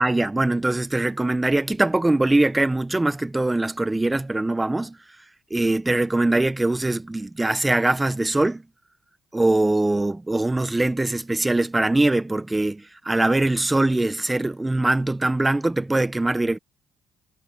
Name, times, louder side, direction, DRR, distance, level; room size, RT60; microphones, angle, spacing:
voice 1, 0.0-5.0 5.5-8.6 9.3-16.6, right 2 dB, 15° right, 1.0 m, -22 dB
cardioid pair, 90°, 0 cm